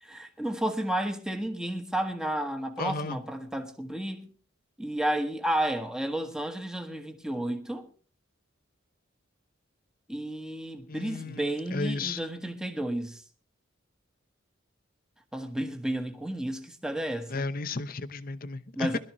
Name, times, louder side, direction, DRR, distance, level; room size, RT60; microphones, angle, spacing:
voice 1, 0.0-4.3 4.8-7.9 10.1-13.2 15.3-17.5 18.8-19.0, right 1 dB, 5° right, 1.2 m, -32 dB
voice 2, 2.8-3.2 10.9-12.2 17.3-19.0, left 3 dB, 45° left, 0.8 m, -34 dB
21.5 x 12.5 x 3.1 m
head